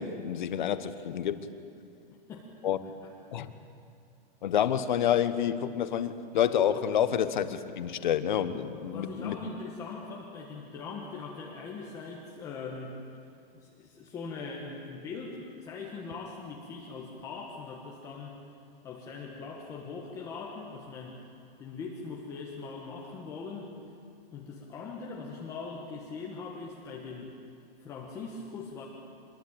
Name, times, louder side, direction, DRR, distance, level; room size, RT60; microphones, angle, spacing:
voice 1, 0.0-1.4 2.6-2.8 3.3-3.5 4.4-9.3, left 9 dB, 50° left, 11 dB, 1.4 m, -28 dB
voice 2, 2.1-2.5 3.0-3.4 8.7-13.0 13.5-18.4 18.8-21.2 21.6-23.8 24.3-27.3 27.8-28.8, left 4 dB, 10° left, -2 dB, 1.3 m, -41 dB
26.0 x 21.5 x 8.8 m, 2.4 s
hypercardioid pair, 180°, 31 cm